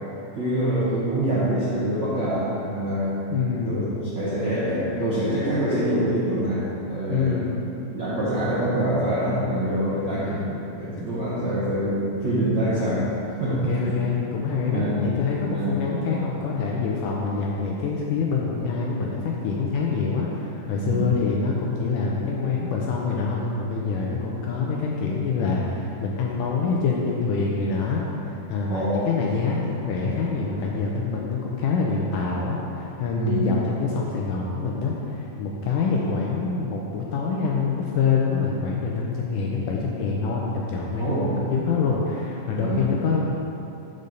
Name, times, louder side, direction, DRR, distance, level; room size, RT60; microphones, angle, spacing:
voice 1, 0.4-3.2 3.7-7.4 7.9-13.9 14.7-15.2 15.5-15.8 20.8-21.1 28.7-29.1 33.2-33.5 41.0-41.3 41.7-41.8 42.6-42.9, right 1 dB, 90° right, -10 dB, 1.0 m, -25 dB
voice 2, 3.3-3.9 7.1-7.6 13.5-28.0 28.5-41.2 41.5-43.3, left 4 dB, 80° left, -2 dB, 1.9 m, -26 dB
5.5 x 5.3 x 6.5 m, 2.8 s
omnidirectional pair, 4.3 m